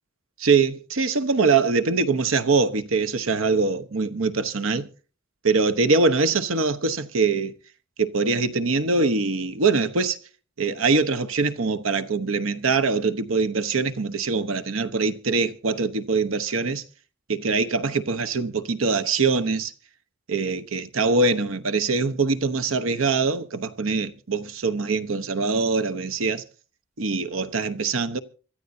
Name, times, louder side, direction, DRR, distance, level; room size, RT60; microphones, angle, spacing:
voice 1, 0.4-4.9 5.4-7.5 8.0-10.2 10.6-16.8 17.3-19.7 20.3-26.4 27.0-28.2, right 4 dB, 85° right, 1.0 m, -23 dB
25.5 x 13.0 x 2.7 m
head